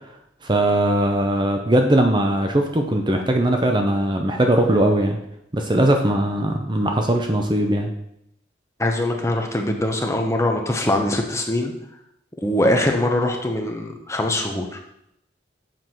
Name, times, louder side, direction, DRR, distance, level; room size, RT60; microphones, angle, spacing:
voice 1, 0.4-5.2 5.5-7.9, right 1 dB, 25° right, 4 dB, 0.7 m, -20 dB
voice 2, 8.8-11.7 12.4-14.8, left 1 dB, 15° left, 2 dB, 1.0 m, -22 dB
7.7 x 4.8 x 6.0 m, 0.77 s
head